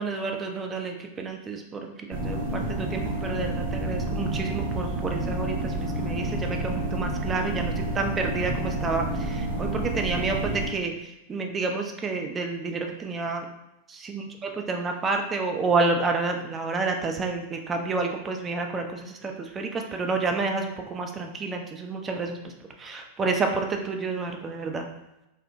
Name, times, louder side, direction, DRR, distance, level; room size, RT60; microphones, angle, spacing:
voice 1, 0.0-10.9 11.3-13.4 13.9-14.2 14.7-22.4 22.8-24.9, right 3 dB, 20° right, 3 dB, 0.3 m, -29 dB
sound 1, 2.1-10.7, right 1 dB, 60° right, 0.6 m, -29 dB
2.6 x 2.0 x 2.6 m, 0.92 s
figure-of-eight pair, 90°, 0 cm